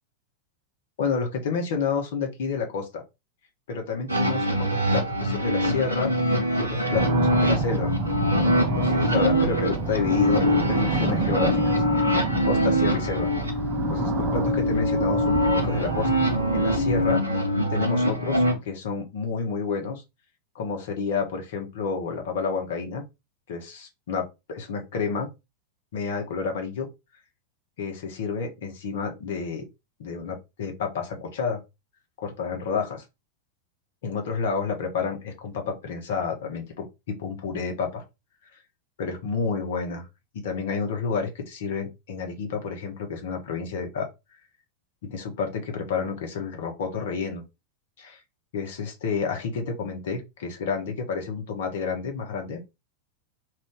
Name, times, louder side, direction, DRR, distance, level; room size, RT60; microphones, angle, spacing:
voice 1, 1.0-3.0 3.7-6.1 6.6-7.9 8.2-11.8 12.4-13.3 13.8-15.4 15.6-16.1 16.5-17.4 17.7-20.0 20.5-23.0 23.5-25.3 25.9-26.9 27.8-29.6 30.0-31.6 32.2-33.0 34.0-38.0 39.0-40.1 40.3-44.1 45.0-47.4 48.0-48.2 48.5-52.6, left 5 dB, 55° left, 0.9 m, -30 dB
sound 1, 4.1-18.5, equal, 85° right, 0.7 m, -24 dB
sound 2, 6.9-17.1, right 4 dB, 30° right, 0.6 m, -29 dB
2.5 x 2.4 x 3.6 m
figure-of-eight pair, 90°, 0 cm